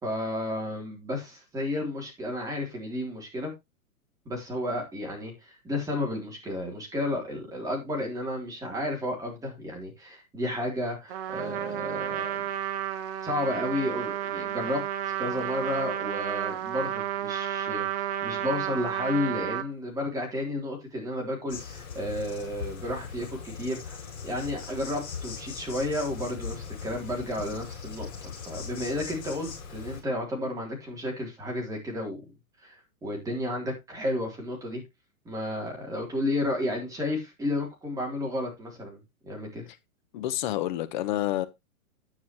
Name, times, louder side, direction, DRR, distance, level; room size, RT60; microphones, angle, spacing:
voice 1, 0.0-3.5 4.3-12.4 13.2-17.9 18.2-32.2 32.6-34.8 35.3-39.7, left 1 dB, 10° right, 3.5 m, -32 dB
Trumpet, 11.1-19.7, right 11 dB, 40° right, 1.5 m, -32 dB
Insect, 21.5-30.0, left 6 dB, 50° left, 7.9 m, -39 dB
voice 2, 40.1-41.5, left 13 dB, 35° left, 1.1 m, -28 dB
9.8 x 9.5 x 3.1 m
hypercardioid pair, 155°, 44 cm